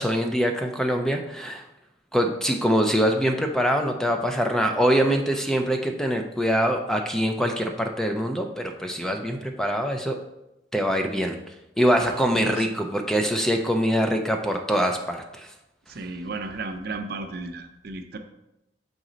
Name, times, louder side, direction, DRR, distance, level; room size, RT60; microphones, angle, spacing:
voice 1, 0.0-1.6 2.1-10.2 10.7-11.4 11.8-15.5, equal, 5° left, 4 dB, 0.4 m, -24 dB
voice 2, 12.0-12.7 15.9-18.2, right 3 dB, 60° right, 7 dB, 0.5 m, -34 dB
6.1 x 4.1 x 3.8 m, 0.90 s
head